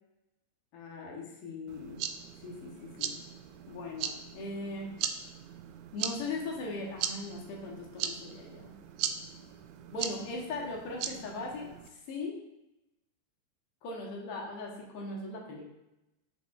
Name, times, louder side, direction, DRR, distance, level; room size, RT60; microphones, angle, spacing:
voice 1, 0.7-2.0 2.4-3.2 3.7-4.9 5.9-8.7 9.9-12.4 13.8-15.7, left 2 dB, 45° left, -2 dB, 1.0 m, -39 dB
sound 1, 1.7-11.9, right 9 dB, 45° right, 0.3 m, -39 dB
5.7 x 2.8 x 2.4 m, 0.92 s
figure-of-eight pair, 90°, 0 cm